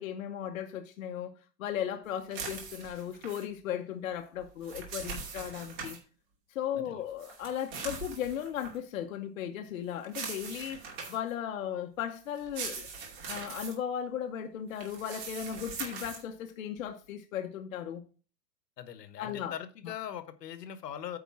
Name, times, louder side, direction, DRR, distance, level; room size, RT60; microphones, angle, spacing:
voice 1, 0.0-1.3 1.6-6.0 6.5-12.9 13.3-18.0 19.2-19.5, left 9 dB, 55° left, 0.8 m, -36 dB
sound 1, 2.3-3.4 4.4-6.0 7.2-8.8 10.0-11.3 12.3-13.7 14.7-16.2, right 5 dB, 35° right, 2.4 m, -41 dB
voice 2, 18.8-21.2, left 10 dB, 75° left, 1.2 m, -41 dB
9.1 x 4.1 x 5.8 m
supercardioid pair, 175°, 49 cm